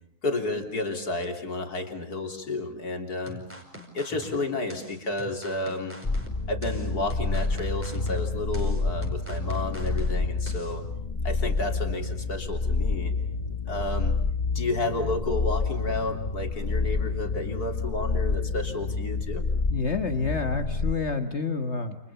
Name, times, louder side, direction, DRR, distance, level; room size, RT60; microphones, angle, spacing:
voice 1, 0.2-3.4 3.9-6.0 6.5-10.8 11.2-13.1 13.7-14.1 14.6-19.4, left 2 dB, 80° left, 5 dB, 3.8 m, -31 dB
sound 1, 3.3-10.8, equal, 10° right, 5.2 m, -43 dB
sound 2, 6.0-20.9, left 3 dB, 30° left, 1.2 m, -28 dB
voice 2, 19.7-22.0, left 4 dB, 45° left, 7 dB, 1.7 m, -28 dB
29.5 x 28.5 x 7.0 m, 0.66 s
omnidirectional pair, 1.6 m